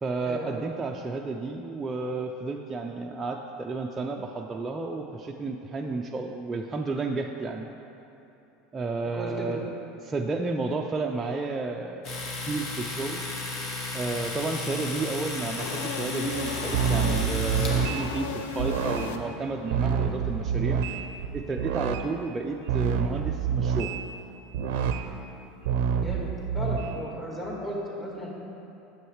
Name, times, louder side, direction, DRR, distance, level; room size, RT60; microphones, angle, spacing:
voice 1, 0.0-7.7 8.7-9.7 10.0-13.2 13.9-20.8 21.3-23.9, right 3 dB, 20° right, 0 dB, 0.4 m, -32 dB
voice 2, 9.1-9.6 25.9-28.3, equal, 15° left, -4 dB, 1.7 m, -35 dB
Domestic sounds home sounds, 12.0-18.0, left 3 dB, 45° left, 1.3 m, -34 dB
sound 1, 15.6-19.7, left 6 dB, 90° left, 0.4 m, -35 dB
sound 2, 16.2-22.1 22.7-24.0 24.5-25.0 25.6-26.9, right 7 dB, 75° right, 0.5 m, -28 dB
9.5 x 7.1 x 3.2 m, 2.9 s
supercardioid pair, 125°, 0 cm